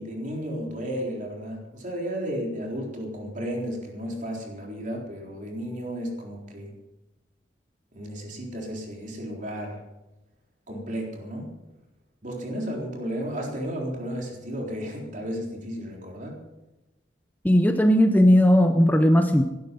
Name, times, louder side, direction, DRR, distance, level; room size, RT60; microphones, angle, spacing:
voice 1, 0.0-6.7 7.9-9.8 10.7-11.5 12.2-16.4, equal, 45° right, 0 dB, 3.8 m, -33 dB
voice 2, 17.4-19.4, equal, 10° left, 6 dB, 0.7 m, -17 dB
17.0 x 12.0 x 5.4 m, 1.0 s
head